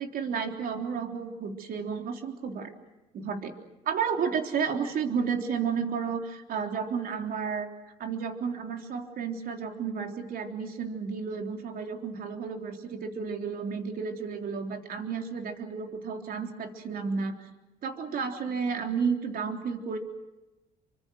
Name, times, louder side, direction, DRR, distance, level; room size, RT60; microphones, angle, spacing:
voice 1, 0.0-2.7 3.1-3.5 3.9-7.7 8.0-17.5 17.8-20.0, right 6 dB, 60° right, 4 dB, 3.6 m, -32 dB
28.0 x 24.5 x 6.3 m, 1.0 s
cardioid pair, 110°, 17 cm